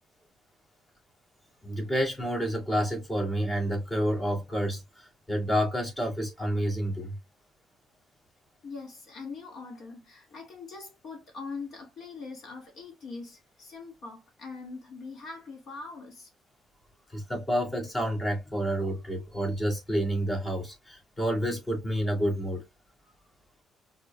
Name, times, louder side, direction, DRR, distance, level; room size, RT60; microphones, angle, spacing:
voice 1, 1.6-7.1 17.1-22.7, equal, 25° left, 2.9 m, -29 dB
voice 2, 8.6-16.3, left 4 dB, 65° left, 2.2 m, -42 dB
4.9 x 4.3 x 2.4 m
cardioid pair, 90°, 0 cm